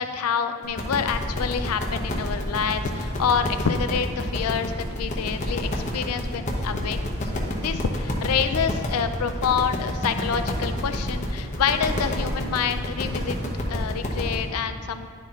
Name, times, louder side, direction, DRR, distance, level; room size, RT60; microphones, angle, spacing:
voice 1, 0.0-13.4 13.7-15.1, left 6 dB, 90° left, 9 dB, 0.4 m, -27 dB
sound 1, 0.6-14.4, left 1 dB, 35° left, 0.9 m, -29 dB
10.5 x 4.3 x 3.7 m, 2.3 s
head